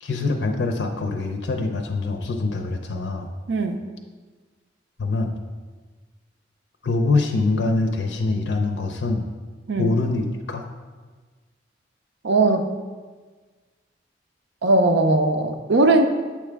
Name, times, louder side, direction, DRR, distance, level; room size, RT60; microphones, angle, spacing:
voice 1, 0.0-3.3 5.0-5.3 6.8-9.3 9.8-10.6, left 3 dB, 70° left, 4 dB, 0.5 m, -24 dB
voice 2, 3.5-3.8 9.7-9.9 12.2-12.6 14.6-16.0, right 2 dB, 70° right, 6 dB, 0.5 m, -19 dB
7.3 x 4.8 x 3.4 m, 1.4 s
head